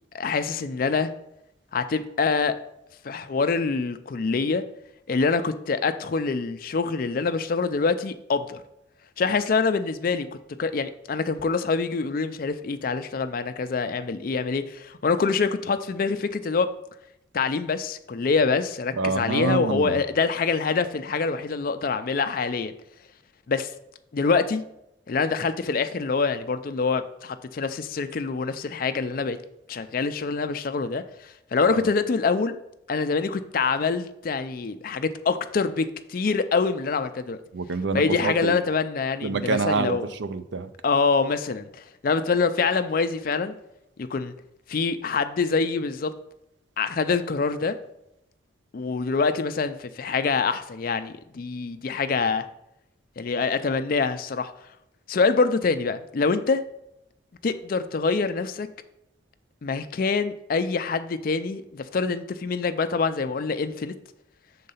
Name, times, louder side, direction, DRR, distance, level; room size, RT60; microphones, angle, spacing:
voice 1, 0.1-1.1 1.7-2.6 3.0-4.6 5.1-8.6 9.2-10.3 10.6-16.7 17.3-22.7 23.5-23.7 24.1-24.6 25.1-29.4 29.7-31.0 31.5-32.5 32.9-37.4 37.9-40.1 40.8-41.7 42.0-43.5 44.0-44.3 44.7-46.1 46.8-47.8 48.7-52.5 53.2-54.5 55.1-56.6 57.4-58.7 59.6-63.9, left 4 dB, 50° left, 10 dB, 0.4 m, -25 dB
voice 2, 19.0-20.0 31.7-31.9 37.5-38.6 39.2-40.7, right 4 dB, 75° right, 11 dB, 0.5 m, -27 dB
6.5 x 3.9 x 5.5 m, 0.82 s
head